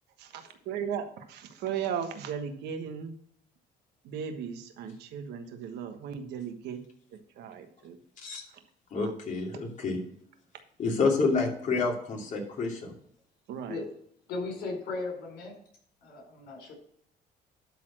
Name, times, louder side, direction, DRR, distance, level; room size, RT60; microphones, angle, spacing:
voice 1, 0.2-3.1 4.0-6.8 7.4-8.0 9.0-9.1 13.5-13.8, right 7 dB, 80° right, 7 dB, 1.3 m, -36 dB
voice 2, 8.9-10.0 10.8-12.9, left 4 dB, 45° left, -1 dB, 2.9 m, -28 dB
voice 3, 14.3-15.5 16.0-16.7, left 3 dB, 75° left, 1 dB, 4.4 m, -36 dB
12.0 x 4.3 x 6.3 m, 0.66 s
cardioid pair, 110°, 17 cm